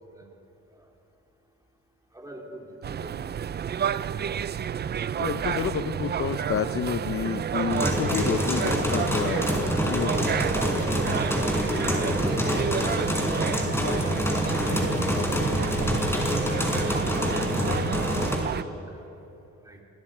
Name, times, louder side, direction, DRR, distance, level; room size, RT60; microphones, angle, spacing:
voice 1, 2.1-3.2 3.5-3.9 9.0-9.8 10.1-10.3 10.8-13.2 13.9-15.5 15.8-16.0 18.9-19.1 19.7-19.8, right 1 dB, 10° right, 0 dB, 3.6 m, -41 dB
sound 1, 2.8-18.6, right 8 dB, 35° right, 0.5 m, -30 dB
voice 2, 5.2-9.4 9.8-10.1, left 8 dB, 45° left, 10 dB, 0.7 m, -30 dB
sound 2, 7.7-18.4, left 1 dB, 10° left, 4.4 m, -26 dB
26.5 x 19.5 x 5.0 m, 2.9 s
cardioid pair, 90°, 30 cm